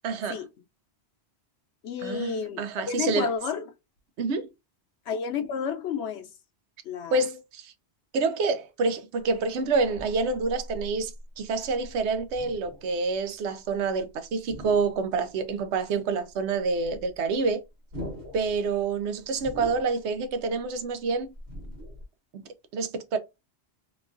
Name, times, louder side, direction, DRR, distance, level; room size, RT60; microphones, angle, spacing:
voice 1, 0.0-0.4 2.0-3.3 4.2-4.5 7.1-7.7 8.1-17.6 18.3-21.3 22.3-22.4 22.7-23.2, right 4 dB, 90° right, 0.9 m, -27 dB
voice 2, 1.8-3.7 5.1-6.3 6.8-7.2, left 6 dB, 75° left, 0.9 m, -31 dB
sound 1, 9.2-14.1 14.4-15.6 15.9-16.0 16.3-22.0, equal, 45° right, 1.1 m, -43 dB
3.0 x 2.3 x 2.4 m
omnidirectional pair, 1.1 m